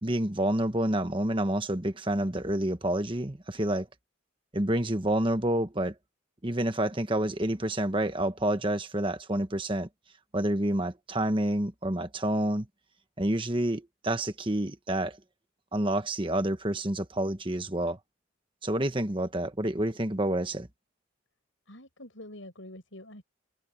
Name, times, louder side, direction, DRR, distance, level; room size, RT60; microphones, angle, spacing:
voice 1, 0.0-3.9 4.5-5.9 6.4-9.9 10.3-12.7 13.2-15.2 15.7-18.0 18.6-20.7, right 1 dB, 25° right, 1.4 m, -28 dB
voice 2, 21.7-23.2, left 1 dB, 70° left, 7.1 m, -46 dB
head